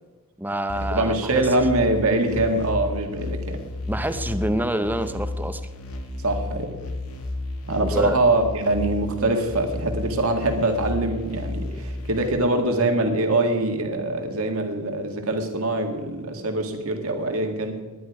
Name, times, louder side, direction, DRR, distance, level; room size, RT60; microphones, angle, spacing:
voice 1, 0.4-1.3 3.9-5.6 7.9-8.2, right 1 dB, 10° right, 10 dB, 0.7 m, -26 dB
sound 1, 0.7-12.3, left 2 dB, 80° left, 2.1 m, -32 dB
voice 2, 0.9-3.6 6.2-6.7 7.7-17.8, right 2 dB, 70° right, 4 dB, 2.0 m, -23 dB
19.5 x 10.5 x 4.9 m, 1.3 s
head